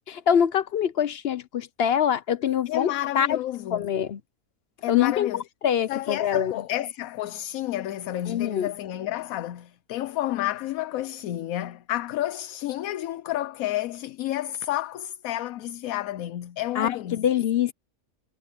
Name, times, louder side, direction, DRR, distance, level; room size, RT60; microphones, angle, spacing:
voice 1, 0.1-3.4 3.7-4.2 4.9-6.5 8.3-8.7 16.8-17.7, left 9 dB, 60° left, 0.7 m, -24 dB
voice 2, 2.7-3.9 4.8-5.4 5.9-17.2, left 14 dB, 75° left, 1.0 m, -30 dB
omnidirectional pair, 1.5 m